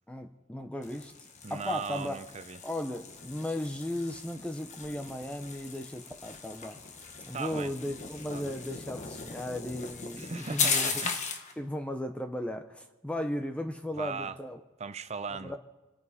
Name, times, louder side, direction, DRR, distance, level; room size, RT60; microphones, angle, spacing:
voice 1, 0.1-2.2 2.6-6.8 7.3-10.9 11.6-14.6 15.4-15.6, left 1 dB, 5° left, 0.7 m, -36 dB
sound 1, 0.8-11.5, left 5 dB, 35° left, 1.3 m, -37 dB
voice 2, 1.4-2.6 7.3-7.7 8.3-8.5 10.2-11.2 14.0-14.4 14.8-15.6, right 5 dB, 35° right, 0.6 m, -38 dB
28.0 x 9.3 x 4.2 m
head